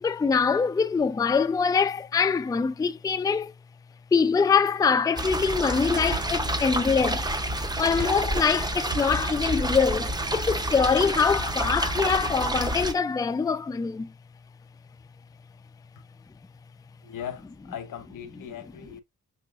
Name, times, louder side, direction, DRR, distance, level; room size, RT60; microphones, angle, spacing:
voice 1, 0.0-3.5 4.1-7.3 7.8-14.1, left 5 dB, 10° left, 0.3 m, -24 dB
sound 1, 5.2-12.9, right 1 dB, 15° right, 0.7 m, -29 dB
sound 2, 6.1-6.6 7.0-7.6 8.0-8.3 8.9-9.3, right 6 dB, 50° right, 2.0 m, -38 dB
voice 2, 17.0-19.0, left 9 dB, 85° left, 0.9 m, -39 dB
6.0 x 2.8 x 2.4 m
cardioid pair, 80°, 31 cm